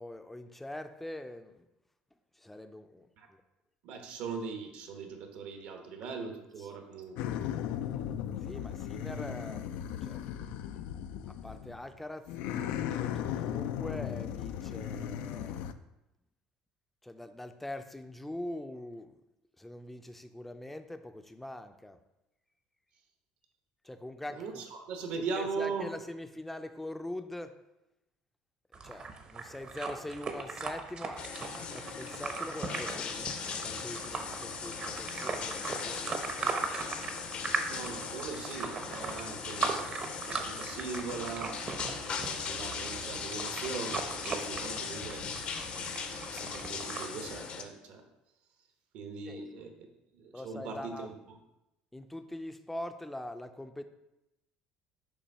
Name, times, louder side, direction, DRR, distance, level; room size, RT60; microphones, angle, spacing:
voice 1, 0.0-1.7 2.4-3.4 6.6-6.7 8.4-9.7 10.0-10.2 11.3-12.3 12.9-15.5 17.0-19.2 19.6-22.0 23.8-24.7 25.4-27.6 28.8-36.6 49.3-49.4 50.3-51.1 51.9-53.8, left 1 dB, 5° left, 8 dB, 0.4 m, -43 dB
voice 2, 3.8-7.4 24.3-25.9 37.7-41.6 42.1-45.2 46.0-48.0 48.9-49.9 50.1-51.4, right 5 dB, 70° right, 4 dB, 1.1 m, -40 dB
sound 1, 7.2-11.8 12.3-15.7, left 10 dB, 75° left, 0.3 m, -36 dB
sound 2, 28.7-47.1, right 4 dB, 40° right, 0.8 m, -39 dB
sound 3, 31.2-47.6, left 6 dB, 50° left, 0.7 m, -39 dB
7.0 x 2.6 x 5.4 m, 0.93 s
cardioid pair, 110°, 3 cm